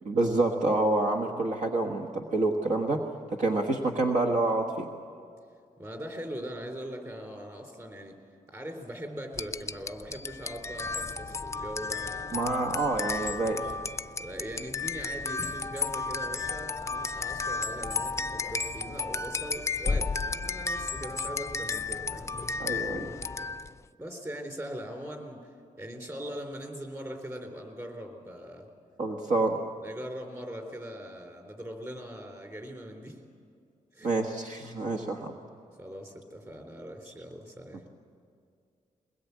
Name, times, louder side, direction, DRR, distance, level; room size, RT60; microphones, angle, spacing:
voice 1, 0.0-3.0 3.3-4.9 12.3-13.7 22.6-23.1 29.0-29.6 34.0-35.4, right 2 dB, 65° right, 2 dB, 1.5 m, -27 dB
voice 2, 5.8-8.2 8.5-12.4 13.4-13.7 14.2-22.4 22.6-22.8 24.0-25.5 25.8-28.7 29.8-33.2 33.9-34.1 35.8-37.8, equal, 20° right, 3 dB, 3.9 m, -41 dB
sound 1, 9.3-23.8, left 4 dB, 20° left, 0.5 m, -33 dB
22.0 x 20.5 x 8.4 m, 2.3 s
wide cardioid pair, 120°, 13 cm